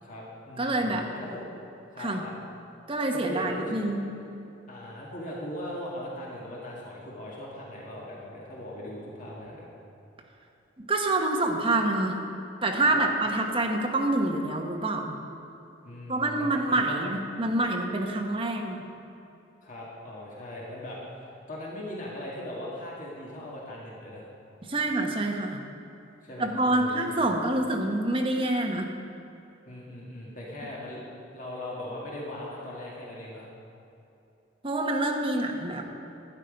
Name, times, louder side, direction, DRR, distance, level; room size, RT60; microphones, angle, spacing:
voice 1, 0.0-1.4 1.9-2.3 3.1-3.8 4.7-9.7 12.9-13.0 15.8-17.0 19.6-24.3 26.2-27.2 29.7-31.0 31.3-33.5, left 1 dB, 45° left, -5 dB, 1.9 m, -39 dB
voice 2, 0.6-1.1 2.0-2.2 2.9-4.0 10.8-12.2 12.6-15.2 16.1-18.8 24.7-25.6 26.4-28.9 34.6-35.9, right 2 dB, 30° right, 1 dB, 1.1 m, -27 dB
12.5 x 9.3 x 5.2 m, 2.7 s
head